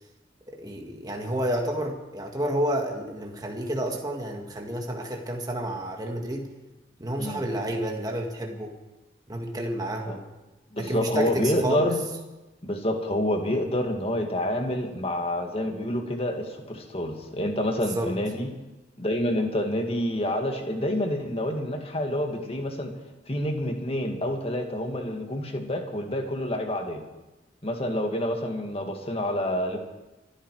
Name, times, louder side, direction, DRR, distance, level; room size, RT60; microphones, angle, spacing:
voice 1, 0.5-6.5 7.0-8.7 9.3-10.2 10.8-11.9 17.8-18.1, right 1 dB, 20° right, 1 dB, 1.9 m, -30 dB
voice 2, 10.7-12.1 12.6-18.5 19.0-22.9 23.3-27.0 27.6-29.8, left 1 dB, 30° left, 3 dB, 2.0 m, -28 dB
24.5 x 12.0 x 4.8 m, 1.1 s
head